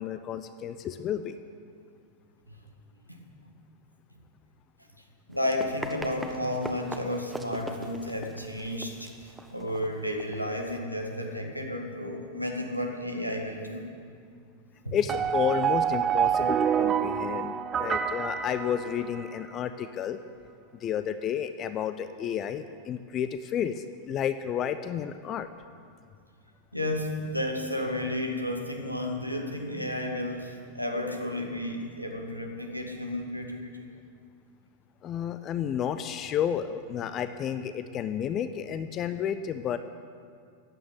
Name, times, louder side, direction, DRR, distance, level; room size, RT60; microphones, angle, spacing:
voice 1, 0.0-1.4 14.9-20.2 20.7-25.5 35.0-39.8, left 9 dB, 30° left, 11 dB, 0.6 m, -31 dB
voice 2, 5.3-13.9 14.8-15.0 26.7-33.9, left 1 dB, 90° left, 1 dB, 2.1 m, -32 dB
Run, 5.3-10.8, right 1 dB, 5° right, 1.2 m, -41 dB
sound 1, 15.1-19.4, right 8 dB, 25° right, 0.7 m, -27 dB
15.0 x 9.4 x 9.8 m, 2.2 s
figure-of-eight pair, 90°, 0 cm